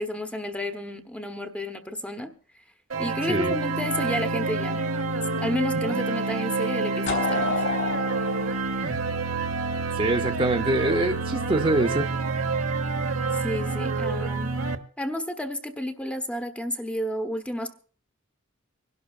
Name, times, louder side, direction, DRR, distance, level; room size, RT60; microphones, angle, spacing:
voice 1, 0.0-2.3 3.0-4.9 5.4-7.6 13.4-14.6 15.0-17.7, equal, 5° left, 1.0 m, -31 dB
sound 1, 2.9-14.7, right 3 dB, 75° right, 1.1 m, -28 dB
sound 2, 7.1-9.9, left 4 dB, 60° left, 4.0 m, -30 dB
voice 2, 10.0-12.1, right 2 dB, 25° right, 0.6 m, -24 dB
25.0 x 11.5 x 2.4 m
head